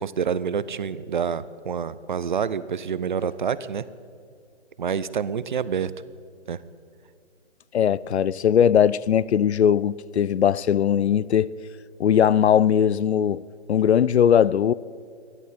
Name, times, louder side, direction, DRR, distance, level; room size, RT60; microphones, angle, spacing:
voice 1, 0.0-3.8 4.8-5.9 6.5-6.6, right 7 dB, 45° right, 0.6 m, -27 dB
voice 2, 7.7-11.5 12.0-13.4 13.7-14.7, left 9 dB, 75° left, 0.5 m, -19 dB
26.5 x 11.0 x 4.2 m
hypercardioid pair, 165°, 34 cm